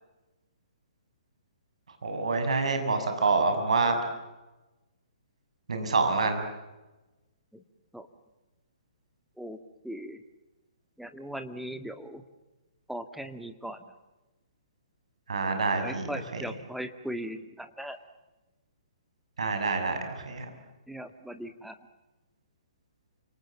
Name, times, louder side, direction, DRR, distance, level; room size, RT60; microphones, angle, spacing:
voice 1, 2.0-4.0 5.7-6.4 15.3-16.4 19.4-20.5, right 4 dB, 70° right, 6 dB, 6.8 m, -27 dB
voice 2, 9.8-10.2 11.0-12.2 12.9-13.8 15.8-18.0 20.9-21.7, equal, ahead, 7 dB, 1.8 m, -38 dB
29.5 x 27.0 x 7.4 m, 1.1 s
figure-of-eight pair, 130°, 4 cm